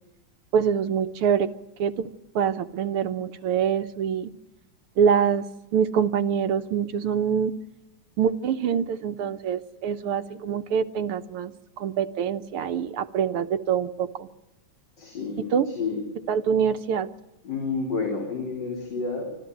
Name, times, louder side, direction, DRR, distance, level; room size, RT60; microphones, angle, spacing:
voice 1, 0.5-1.5 1.8-4.3 5.0-5.4 5.7-7.5 8.2-11.5 11.8-14.3 15.4-15.7 16.3-17.1, right 7 dB, 85° right, 9 dB, 1.9 m, -25 dB
voice 2, 15.0-16.0 17.4-19.4, left 4 dB, 55° left, 1 dB, 4.3 m, -30 dB
26.0 x 14.5 x 9.2 m, 0.97 s
omnidirectional pair, 2.4 m